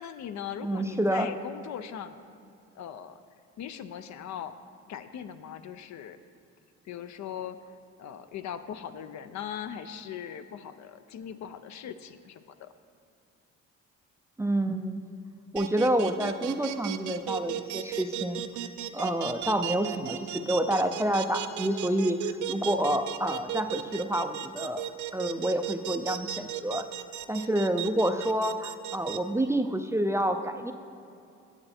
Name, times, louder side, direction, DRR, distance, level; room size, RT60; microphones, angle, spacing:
voice 1, 0.0-2.2 2.7-3.2 3.6-4.5 4.9-6.2 6.8-12.7, left 9 dB, 65° left, 11 dB, 0.5 m, -40 dB
voice 2, 0.6-1.3 14.4-15.0 15.5-18.4 18.9-24.8 25.1-26.9 27.3-30.7, right 1 dB, 10° right, 7 dB, 0.3 m, -28 dB
sound 1, 15.6-29.2, right 12 dB, 75° right, 0.5 m, -35 dB
8.9 x 7.7 x 4.3 m, 2.6 s
cardioid pair, 90°, 30 cm